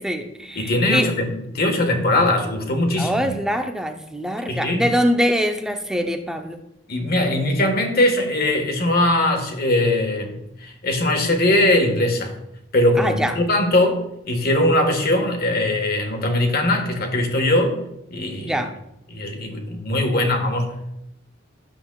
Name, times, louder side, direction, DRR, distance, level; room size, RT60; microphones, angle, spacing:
voice 1, 0.0-1.1 3.0-6.6 13.0-13.3 18.4-18.7, equal, 5° right, 5 dB, 0.6 m, -23 dB
voice 2, 0.5-3.4 4.5-4.8 6.9-12.4 12.7-14.0 14.2-17.8 18.1-18.6 19.1-20.9, left 1 dB, 50° left, 4 dB, 1.4 m, -21 dB
12.0 x 7.3 x 2.3 m, 0.82 s
head